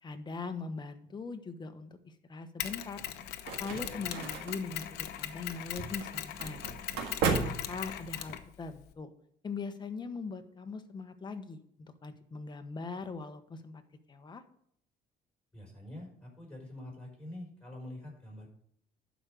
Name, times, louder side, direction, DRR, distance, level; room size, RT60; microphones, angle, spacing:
voice 1, 0.0-3.0 3.6-6.6 7.4-9.1 9.4-13.8 14.1-14.4, left 4 dB, 25° left, 7 dB, 1.1 m, -41 dB
Mechanisms, 2.6-8.9, left 12 dB, 75° left, 0.8 m, -40 dB
sound 1, 3.0-8.3, right 5 dB, 85° right, 1.8 m, -36 dB
voice 2, 15.5-18.5, left 1 dB, 5° left, -2 dB, 5.2 m, -46 dB
11.5 x 5.2 x 6.3 m, 0.67 s
cardioid pair, 110°, 17 cm